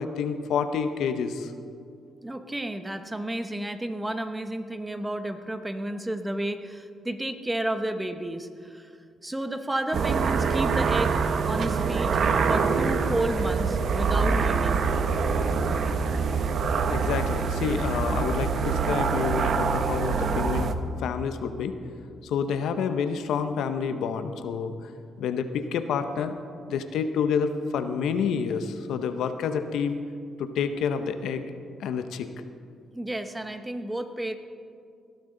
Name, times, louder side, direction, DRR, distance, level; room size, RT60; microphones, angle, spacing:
voice 1, 0.0-1.5 16.9-20.7 21.0-21.8 22.2-24.9 25.2-26.3 26.7-30.0 30.4-31.4 31.8-32.3, left 6 dB, 80° left, 9 dB, 0.8 m, -28 dB
voice 2, 2.2-8.9 9.2-14.9 32.9-34.4, right 1 dB, 10° right, 8 dB, 0.9 m, -32 dB
sound 1, 9.9-20.7, right 5 dB, 55° right, 0.8 m, -25 dB
18.5 x 11.5 x 3.9 m, 2.3 s
cardioid pair, 90°, 0 cm